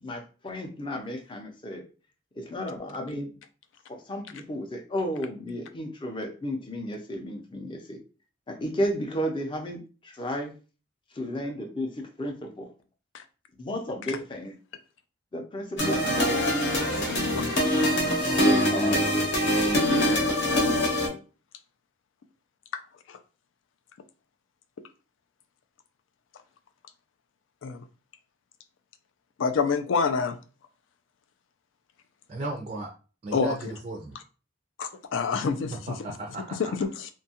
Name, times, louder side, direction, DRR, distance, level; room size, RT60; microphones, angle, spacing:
voice 1, 0.0-1.8 2.4-3.3 3.9-8.0 8.5-10.5 11.1-12.7 13.6-14.6 15.3-17.5 18.7-19.2, equal, 25° left, 3 dB, 0.5 m, -33 dB
sound 1, 15.8-21.1, equal, 65° left, 0.9 m, -24 dB
voice 2, 29.4-30.4 33.3-33.6 34.8-35.7 36.8-37.1, left 5 dB, 85° left, 9 dB, 0.4 m, -26 dB
voice 3, 32.3-32.9 33.2-34.2 35.9-36.7, right 1 dB, 35° right, 2 dB, 0.3 m, -35 dB
2.6 x 2.3 x 2.7 m, 0.36 s
head